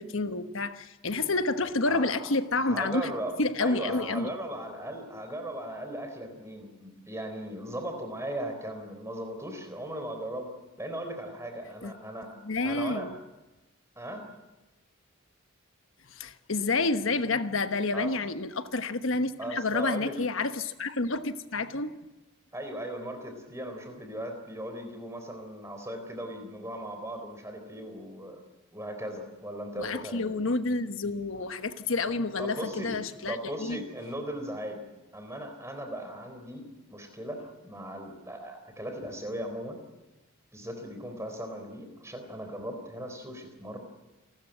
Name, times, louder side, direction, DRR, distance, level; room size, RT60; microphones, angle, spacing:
voice 1, 0.0-3.1 3.4-4.3 11.8-11.9 12.4-13.1 16.1-21.9 29.8-33.8, left 3 dB, 65° left, 1.2 m, -29 dB
voice 2, 1.9-2.3 2.6-12.4 12.6-13.1 14.0-14.3 17.9-18.2 19.4-20.1 22.5-28.4 28.7-30.4 32.4-32.9 33.3-34.9 35.1-36.6 36.9-39.8 40.5-43.8, right 1 dB, 15° right, 3.8 m, -38 dB
28.0 x 13.5 x 9.0 m
head